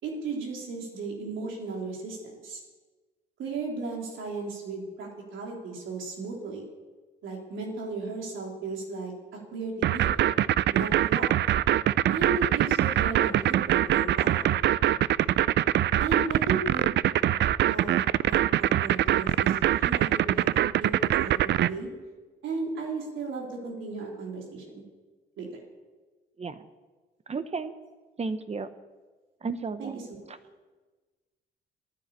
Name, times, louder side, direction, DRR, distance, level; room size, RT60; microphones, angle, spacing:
voice 1, 0.0-2.6 3.4-6.6 7.2-9.1 9.5-10.1 10.7-11.3 12.1-14.5 16.0-16.9 17.7-21.9 22.4-24.8 25.4-25.6 29.8-30.2, right 4 dB, 80° right, -1 dB, 3.7 m, -35 dB
sound 1, 9.8-21.7, right 12 dB, 60° right, 0.4 m, -23 dB
voice 2, 27.3-27.7 28.2-28.7 29.4-30.0 30.3-30.4, right 4 dB, 30° right, 11 dB, 0.9 m, -33 dB
11.5 x 10.5 x 8.4 m, 1.3 s
cardioid pair, 90°, 20 cm